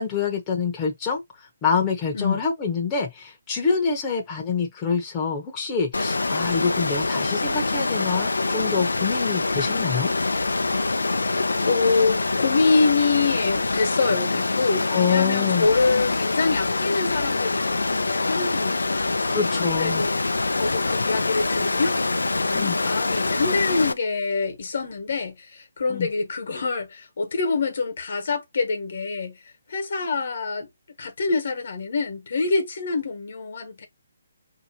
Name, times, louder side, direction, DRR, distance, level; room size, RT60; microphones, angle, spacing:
voice 1, 0.0-10.1 14.9-15.7 19.2-20.1 22.5-22.8 25.9-26.1, left 5 dB, 20° left, 0.9 m, -26 dB
Water, 5.9-23.9, left 3 dB, 90° left, 0.5 m, -25 dB
voice 2, 11.2-20.2 20.5-22.0 22.4-29.4 29.7-30.7 31.0-33.9, left 4 dB, 60° left, 1.3 m, -25 dB
5.2 x 2.8 x 2.9 m
hypercardioid pair, 150°, 0 cm